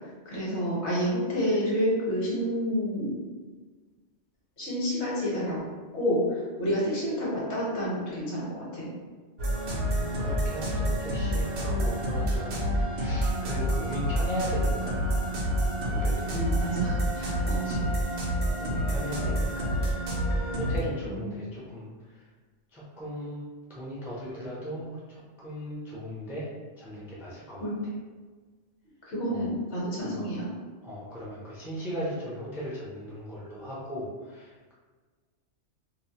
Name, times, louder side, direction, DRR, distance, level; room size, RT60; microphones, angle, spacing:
voice 1, 0.2-3.1 4.6-5.6 5.9-8.9 16.3-17.8 21.0-21.3 27.6-27.8 29.1-30.5, equal, 70° left, -6 dB, 1.2 m, -29 dB
sound 1, 9.4-20.8, equal, 60° right, 0.7 m, -28 dB
voice 2, 9.7-15.2 15.7-16.4 17.6-17.9 18.6-19.9 20.3-22.2 22.7-23.4 23.7-26.5 26.8-27.7 29.3-29.5 30.0-30.4 30.8-34.7, equal, 5° right, -7 dB, 0.3 m, -38 dB
2.6 x 2.0 x 2.8 m, 1.4 s
omnidirectional pair, 1.2 m